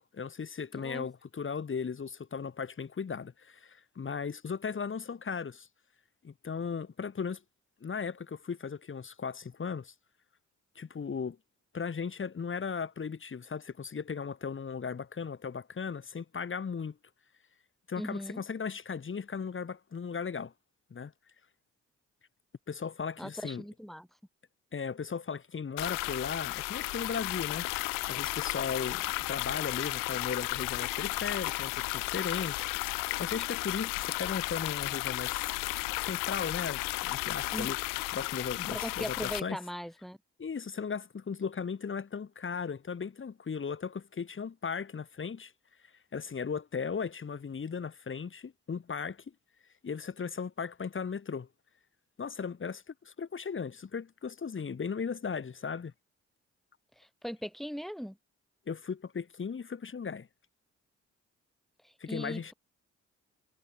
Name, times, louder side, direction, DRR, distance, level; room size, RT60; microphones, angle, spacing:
voice 1, 0.0-5.7 6.2-7.4 7.8-9.9 10.8-11.4 11.7-17.0 17.9-20.5 20.9-21.1 22.7-23.6 24.7-32.8 33.2-35.5 36.0-37.8 38.1-39.6 40.4-45.5 46.1-49.2 49.8-51.5 52.2-55.9 58.7-60.3 62.0-62.5, left 6 dB, 40° left, 1.8 m, -37 dB
voice 2, 0.8-1.1 18.0-18.4 23.2-24.1 37.5-37.7 38.7-40.2 57.0-58.2 61.8-62.5, equal, ahead, 6.1 m, -39 dB
sound 1, 25.8-39.4, left 27 dB, 85° left, 0.7 m, -34 dB
hypercardioid pair, 50°, 32 cm